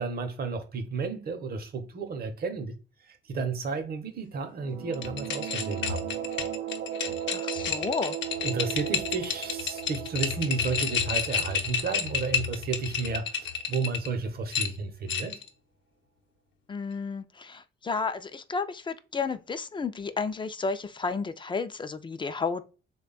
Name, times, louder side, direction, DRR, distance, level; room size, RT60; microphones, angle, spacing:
voice 1, 0.0-2.8 3.1-6.1 8.4-15.4, right 4 dB, 50° right, 0.8 m, -32 dB
sound 1, 4.5-13.1, right 10 dB, 80° right, 0.4 m, -37 dB
sound 2, 4.9-14.1 14.5-15.5, left 7 dB, 65° left, 0.7 m, -31 dB
voice 2, 7.3-8.2 16.7-22.6, left 4 dB, 25° left, 0.4 m, -32 dB
3.4 x 2.2 x 3.8 m
cardioid pair, 90°, 20 cm